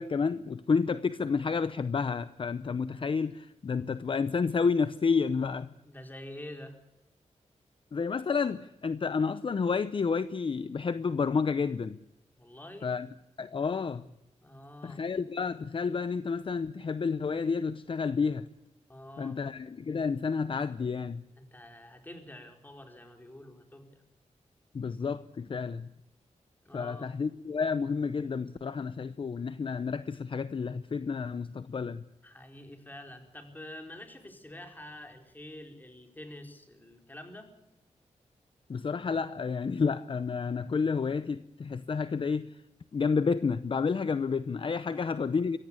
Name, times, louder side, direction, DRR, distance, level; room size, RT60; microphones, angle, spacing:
voice 1, 0.0-5.7 7.9-12.0 12.8-13.1 13.4-14.1 14.8-18.5 19.2-21.2 24.7-25.9 26.7-32.0 38.7-42.6 42.9-45.6, left 5 dB, 45° left, 0.7 m, -30 dB
voice 2, 5.8-6.8 12.4-12.9 14.4-15.0 18.9-19.4 21.4-24.0 26.6-27.1 32.2-37.5 44.8-45.2, left 1 dB, 15° left, 4.5 m, -47 dB
24.0 x 17.0 x 8.5 m
wide cardioid pair, 110°, 12 cm